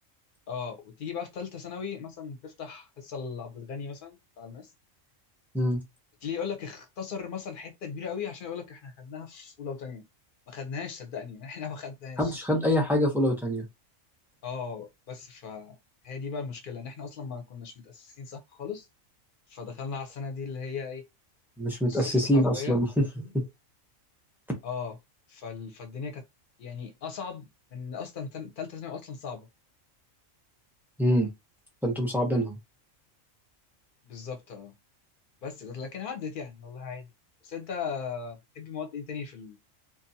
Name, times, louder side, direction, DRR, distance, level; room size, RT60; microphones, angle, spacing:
voice 1, 0.5-4.7 6.2-10.0 10.5-12.4 14.4-15.8 16.0-18.9 19.5-21.0 21.9-22.8 24.6-24.9 25.3-26.2 26.6-29.5 34.0-34.7 35.4-37.1 37.4-39.6, left 6 dB, 50° left, 0.7 m, -38 dB
voice 2, 12.2-13.6 21.6-23.4 31.0-31.3 31.8-32.6, equal, 5° right, 0.4 m, -25 dB
2.6 x 2.3 x 2.7 m
omnidirectional pair, 1.4 m